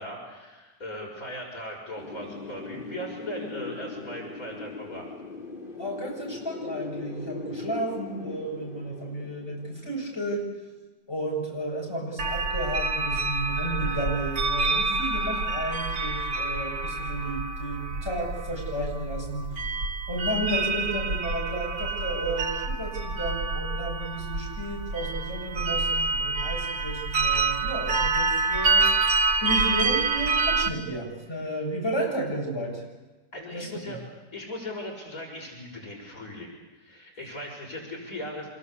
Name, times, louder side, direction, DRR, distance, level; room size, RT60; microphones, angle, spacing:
voice 1, 0.0-5.1 33.3-34.0 34.3-38.5, left 1 dB, 50° left, -1 dB, 6.9 m, -38 dB
Wind, 2.0-10.7, left 4 dB, 30° left, 3.1 m, -40 dB
voice 2, 5.8-10.5 11.1-19.6 20.1-29.0 29.4-32.8 33.5-33.7, right 1 dB, 15° left, -2 dB, 7.7 m, -32 dB
sound 1, 12.2-30.7, right 3 dB, 60° right, 1.7 m, -27 dB
26.5 x 23.0 x 8.5 m, 1.2 s
omnidirectional pair, 1.9 m